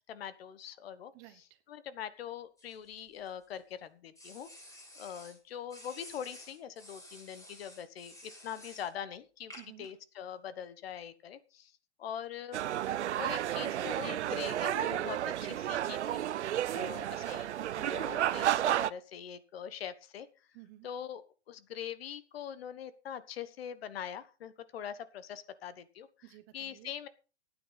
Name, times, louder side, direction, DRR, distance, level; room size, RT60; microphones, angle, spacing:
voice 1, 0.0-1.1 1.7-9.5 9.8-11.7 12.0-12.6 13.2-16.2 16.7-17.5 17.8-20.3 20.8-26.1 26.5-27.1, left 9 dB, 60° left, 14 dB, 1.4 m, -43 dB
voice 2, 1.1-1.6 9.5-9.9 16.7-17.1 20.5-20.9 26.2-26.9, right 16 dB, 30° right, 11 dB, 1.1 m, -54 dB
sound 1, 2.6-3.6 4.2-5.4 5.7-8.9 9.5-9.9, left 1 dB, 10° left, 3.6 m, -52 dB
sound 2, 12.5-18.9, right 12 dB, 75° right, 0.7 m, -32 dB
14.5 x 9.5 x 4.1 m, 0.34 s
hypercardioid pair, 145°, 34 cm